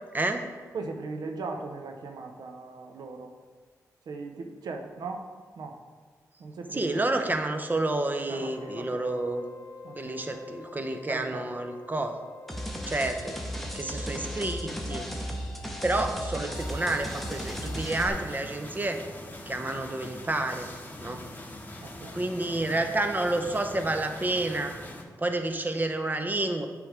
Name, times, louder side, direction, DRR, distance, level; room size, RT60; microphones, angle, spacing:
voice 1, 0.1-0.5 6.7-9.4 10.0-12.2 12.9-13.4 13.7-15.1 15.8-19.0 19.5-20.7 21.0-21.2 22.1-24.8 25.2-26.7, right 2 dB, 25° right, 6 dB, 0.7 m, -29 dB
voice 2, 0.7-3.3 4.1-5.3 5.6-5.8 6.4-7.0 8.3-9.0 9.8-10.4 11.1-11.4 21.8-22.2, right 3 dB, 80° right, 4 dB, 0.7 m, -38 dB
sound 1, 7.9-18.5, left 4 dB, 65° left, 0.4 m, -48 dB
sound 2, 12.5-18.1, equal, ahead, 1.0 m, -35 dB
sound 3, 16.5-25.0, left 1 dB, 25° left, 1.0 m, -43 dB
7.8 x 3.4 x 5.0 m, 1.5 s
cardioid pair, 50°, 7 cm